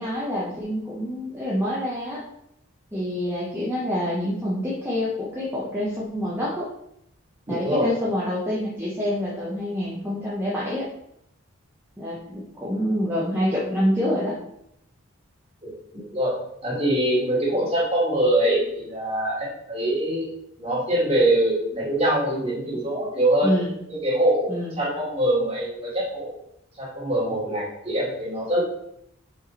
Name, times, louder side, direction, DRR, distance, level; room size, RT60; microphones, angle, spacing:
voice 1, 0.0-2.2 2.9-6.7 7.5-10.9 12.0-14.4 23.4-23.8 24.5-24.8, equal, 10° right, -7 dB, 0.9 m, -27 dB
voice 2, 7.5-7.9 15.6-16.3 16.6-20.3 20.6-23.5 23.9-26.3 26.8-28.6, right 1 dB, 30° right, -6 dB, 2.3 m, -24 dB
5.2 x 4.9 x 4.2 m, 0.77 s
head